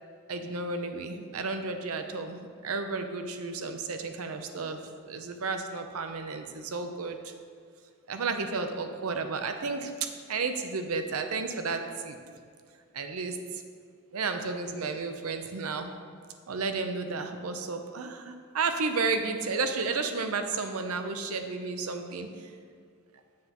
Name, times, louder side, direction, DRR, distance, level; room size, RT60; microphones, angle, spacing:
voice 1, 0.3-4.8 5.0-7.3 8.1-12.2 12.9-13.6 14.1-15.9 16.5-22.3, right 4 dB, 80° right, 7 dB, 0.6 m, -32 dB
7.9 x 7.4 x 3.0 m, 2.1 s
head